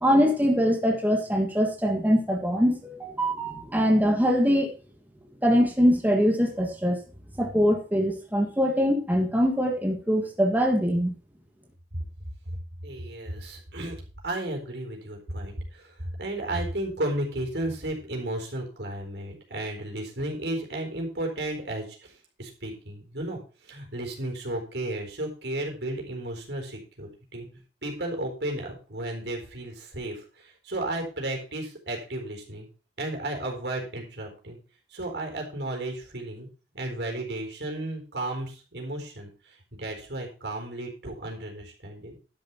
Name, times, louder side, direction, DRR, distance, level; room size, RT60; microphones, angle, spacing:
voice 1, 0.0-4.7 5.4-7.0 7.4-11.1, equal, 10° right, 1 dB, 1.6 m, -23 dB
voice 2, 12.8-14.0 14.2-27.5 27.8-32.7 33.0-34.6 34.9-36.5 36.7-42.1, right 1 dB, 70° right, 2 dB, 4.2 m, -34 dB
11.5 x 7.5 x 4.4 m, 0.35 s
head